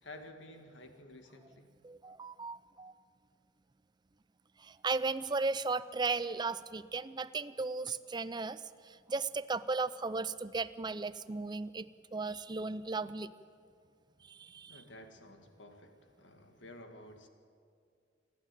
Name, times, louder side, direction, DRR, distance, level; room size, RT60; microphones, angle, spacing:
voice 1, 0.0-1.8 14.7-17.3, left 1 dB, 80° left, 6 dB, 2.0 m, -52 dB
voice 2, 1.8-2.9 4.6-13.3 14.3-14.8, right 3 dB, 25° right, 15 dB, 0.5 m, -36 dB
28.5 x 11.5 x 9.1 m, 2.3 s
head